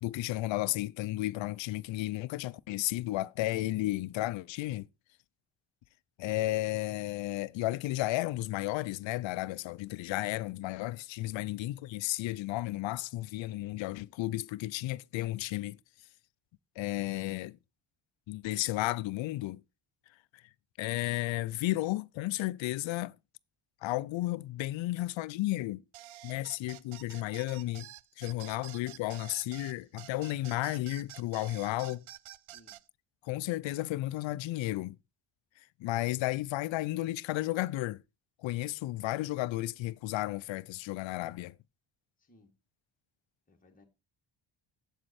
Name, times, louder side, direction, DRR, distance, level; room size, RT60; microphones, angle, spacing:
voice 1, 0.0-4.9 6.2-15.8 16.8-17.6 18.3-19.6 20.8-23.2 23.8-25.8 26.2-27.9 28.2-32.0 33.2-35.0 35.8-38.0 38.4-41.6, left 17 dB, 70° left, 0.5 m, -33 dB
sound 1, 25.9-32.8, right 15 dB, 80° right, 0.6 m, -49 dB
voice 2, 42.2-42.5 43.5-43.8, left 1 dB, 15° left, 1.6 m, -61 dB
7.7 x 7.5 x 4.1 m
cardioid pair, 160°, 47 cm